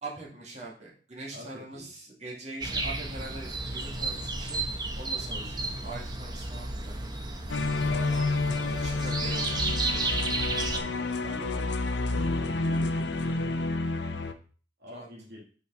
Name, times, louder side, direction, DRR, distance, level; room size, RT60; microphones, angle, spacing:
voice 1, 0.0-4.6 4.9-7.0 7.9-8.4 8.8-9.7 14.9-15.1, right 2 dB, 40° right, -4 dB, 2.5 m, -42 dB
voice 2, 1.3-2.1 5.4-5.8 7.7-9.1 10.5-14.2 14.8-15.4, left 1 dB, 60° right, -3 dB, 2.0 m, -47 dB
sound 1, 2.6-10.8, right 2 dB, 25° right, 0.9 m, -33 dB
sound 2, 7.5-14.3, left 2 dB, 70° left, 0.8 m, -29 dB
6.0 x 5.0 x 5.9 m, 0.40 s
head